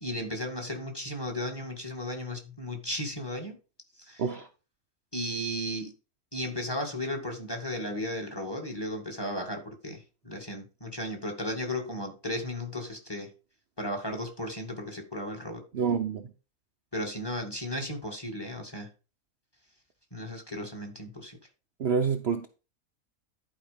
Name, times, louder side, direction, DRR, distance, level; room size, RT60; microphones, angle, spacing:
voice 1, 0.0-3.6 4.0-4.2 5.1-5.9 6.3-13.3 13.8-15.6 16.9-18.9 20.1-21.4, left 1 dB, 15° left, 2.0 m, -35 dB
voice 2, 15.7-16.3 21.8-22.5, right 6 dB, 50° right, 0.9 m, -27 dB
11.5 x 4.9 x 5.1 m
omnidirectional pair, 1.6 m